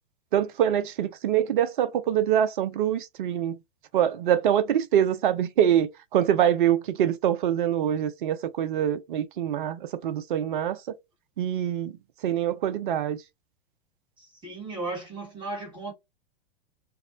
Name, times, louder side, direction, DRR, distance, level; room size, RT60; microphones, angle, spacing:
voice 1, 0.3-3.6 3.9-10.9 11.4-12.0 12.2-13.2, right 10 dB, 55° right, 0.5 m, -24 dB
voice 2, 14.2-15.9, right 3 dB, 15° right, 1.0 m, -35 dB
2.3 x 2.0 x 3.7 m
figure-of-eight pair, 100°, 30 cm